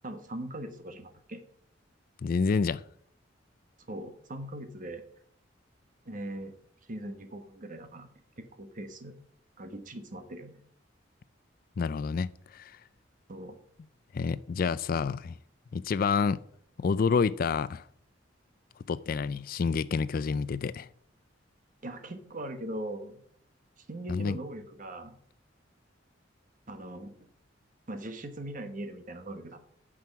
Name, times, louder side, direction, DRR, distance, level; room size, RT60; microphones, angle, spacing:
voice 1, 0.0-1.4 3.9-5.0 6.0-6.5 6.9-8.1 8.4-9.2 9.6-10.6 13.3-13.6 21.8-23.2 23.8-25.2 26.7-27.3 27.9-29.6, right 1 dB, 45° right, 1.2 m, -40 dB
voice 2, 2.2-2.8 11.8-12.8 14.1-15.4 15.7-16.4 16.8-17.8 18.9-20.9 24.1-24.4, left 5 dB, 50° left, 0.3 m, -28 dB
9.4 x 6.2 x 5.7 m
head